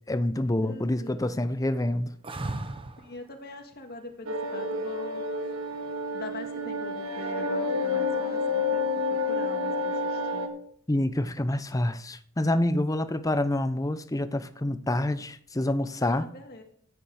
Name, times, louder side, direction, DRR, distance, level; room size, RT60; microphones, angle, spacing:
voice 1, 0.1-2.1 10.9-16.3, left 1 dB, 15° left, 0.6 m, -27 dB
voice 2, 0.6-1.5 3.0-5.2 6.1-10.5 16.0-16.6, left 2 dB, 50° left, 1.7 m, -43 dB
sound 1, 2.2-3.2 5.8-6.4, right 2 dB, 25° right, 0.8 m, -35 dB
sound 2, 4.3-10.5, left 3 dB, 75° right, 1.6 m, -29 dB
13.0 x 8.4 x 4.8 m
head